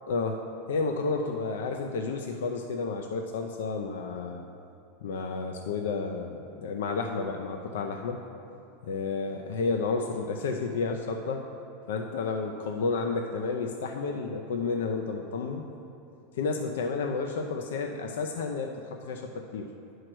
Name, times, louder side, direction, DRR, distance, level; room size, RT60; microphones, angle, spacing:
voice 1, 0.1-0.4 0.7-4.4 5.0-8.2 8.9-11.4 11.9-15.6 16.4-19.7, left 4 dB, 85° left, 3 dB, 0.5 m, -31 dB
10.0 x 4.7 x 6.1 m, 2.7 s
supercardioid pair, 135°, 0 cm